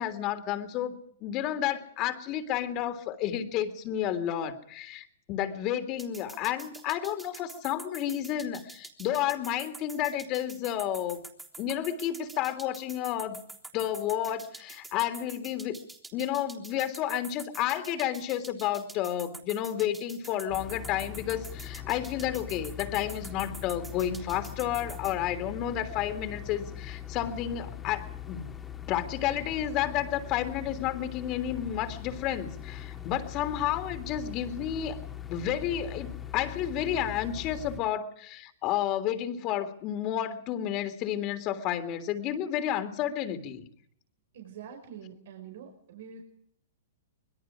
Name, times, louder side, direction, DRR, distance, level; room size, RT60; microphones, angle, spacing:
voice 1, 0.0-11.2 11.6-13.4 13.7-15.8 16.1-28.5 28.9-35.0 35.3-43.6, left 11 dB, 40° left, 10 dB, 3.4 m, -31 dB
sound 1, 6.0-25.1, right 2 dB, 10° right, 3.5 m, -46 dB
sound 2, 20.5-37.8, left 10 dB, 15° left, 2.7 m, -41 dB
voice 2, 44.3-46.2, right 7 dB, 65° right, 4 dB, 5.0 m, -45 dB
26.0 x 21.5 x 5.0 m, 0.68 s
hypercardioid pair, 120°, 0 cm